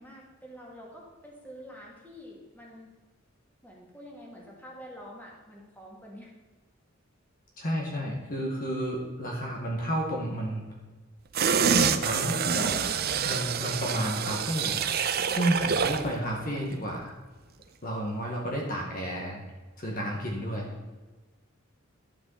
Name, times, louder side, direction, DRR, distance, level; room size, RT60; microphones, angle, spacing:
voice 1, 0.0-2.9 3.6-6.3 12.0-13.0 15.6-15.8 20.5-20.9, equal, 10° left, -3 dB, 2.5 m, -47 dB
voice 2, 7.6-10.6 11.6-12.8 13.2-14.9 15.3-17.1 17.8-19.4 19.8-20.7, equal, 45° left, -1 dB, 1.9 m, -31 dB
sound 1, 11.3-16.1 16.5-16.6, right 6 dB, 50° right, 0.6 m, -27 dB
12.0 x 8.8 x 4.2 m, 1.3 s
head